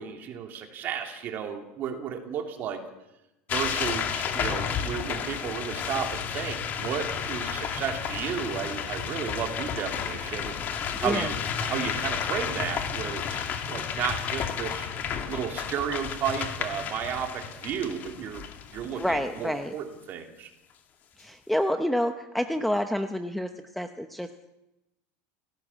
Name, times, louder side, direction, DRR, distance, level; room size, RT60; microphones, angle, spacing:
voice 1, 0.0-2.8 3.5-10.6 11.0-11.4 11.6-14.9 15.3-18.4 18.7-20.5, right 8 dB, 35° right, 4 dB, 3.2 m, -33 dB
sound 1, 3.5-19.4, left 7 dB, 30° left, 2.4 m, -32 dB
voice 2, 10.9-11.3 18.9-19.7 21.2-24.3, equal, ahead, 7 dB, 0.8 m, -28 dB
29.5 x 17.5 x 7.4 m, 0.95 s
supercardioid pair, 170°, 6 cm